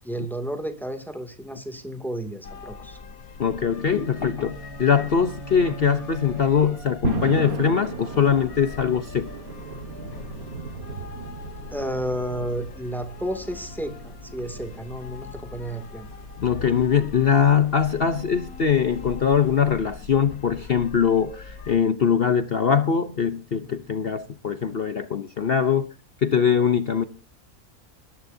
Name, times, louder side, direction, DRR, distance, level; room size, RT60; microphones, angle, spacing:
voice 1, 0.0-3.0 11.7-16.1, right 1 dB, ahead, 6 dB, 2.4 m, -32 dB
sound 1, 2.4-21.8, left 5 dB, 70° left, 1.5 m, -42 dB
voice 2, 3.4-9.3 16.4-25.9 26.2-27.0, left 7 dB, 50° left, 11 dB, 0.9 m, -22 dB
sound 2, 3.8-7.3, right 2 dB, 30° right, 0.6 m, -41 dB
sound 3, 7.0-20.0, right 5 dB, 75° right, 2.1 m, -37 dB
21.5 x 14.5 x 2.7 m, 0.36 s
omnidirectional pair, 1.6 m